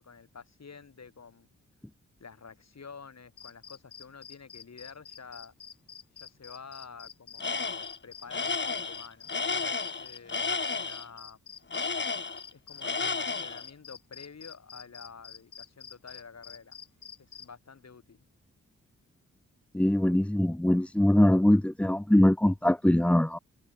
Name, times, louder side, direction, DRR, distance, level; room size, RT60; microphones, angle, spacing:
voice 1, 0.0-1.5 2.2-5.5 6.1-11.4 12.5-16.8 17.2-18.2, left 5 dB, 55° left, 4.6 m, -49 dB
sound 1, 3.4-17.5, left 8 dB, 70° left, 2.4 m, -48 dB
Tools, 7.4-8.0 8.3-11.0 11.7-12.5 12.8-13.6, left 4 dB, 35° left, 1.6 m, -32 dB
voice 2, 19.7-23.4, left 1 dB, 5° left, 0.6 m, -22 dB
supercardioid pair, 45°, 32 cm